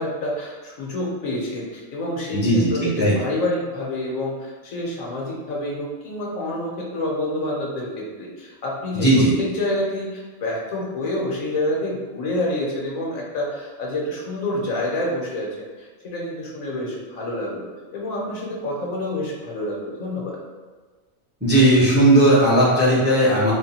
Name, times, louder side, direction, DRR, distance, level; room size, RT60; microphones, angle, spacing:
voice 1, 0.0-15.5 15.8-17.7 17.9-20.4, left 1 dB, 85° left, -3 dB, 1.3 m, -28 dB
voice 2, 2.3-3.2 8.9-9.3 21.4-23.5, right 1 dB, 10° right, -7 dB, 0.7 m, -16 dB
3.7 x 2.2 x 4.1 m, 1.4 s
omnidirectional pair, 1.4 m